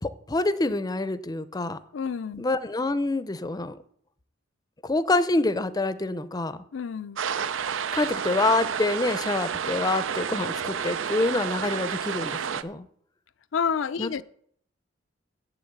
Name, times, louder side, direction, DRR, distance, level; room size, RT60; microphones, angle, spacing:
voice 1, 0.0-1.8 2.4-3.8 4.8-6.6 7.9-12.8 14.0-14.2, left 2 dB, 20° left, 0.6 m, -26 dB
voice 2, 1.9-2.4 6.7-7.2 13.5-14.2, left 6 dB, 80° left, 0.5 m, -29 dB
sound 1, 7.2-12.6, right 7 dB, 85° right, 0.5 m, -30 dB
8.0 x 7.0 x 7.9 m
head